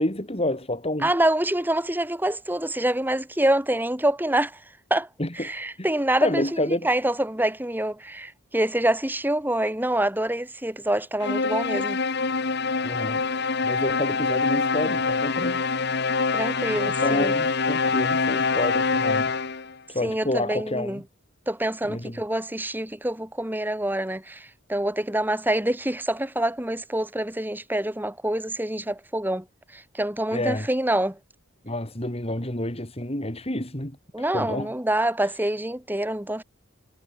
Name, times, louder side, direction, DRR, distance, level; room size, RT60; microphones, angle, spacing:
voice 1, 0.0-1.1 5.2-5.5 5.8-5.9 6.2-6.9 12.8-13.2 13.6-15.6 17.0-19.3 19.9-21.0 21.8-22.2 30.3-30.7 31.6-33.9 34.2-34.7, left 1 dB, 30° left, 3.9 m, -28 dB
voice 2, 1.0-4.6 4.9-5.1 5.3-12.0 16.3-17.3 20.0-21.0 21.5-29.5 29.7-31.2 34.1-36.4, right 1 dB, 10° right, 2.3 m, -26 dB
sound 1, 11.2-19.7, left 4 dB, 55° left, 1.6 m, -25 dB
head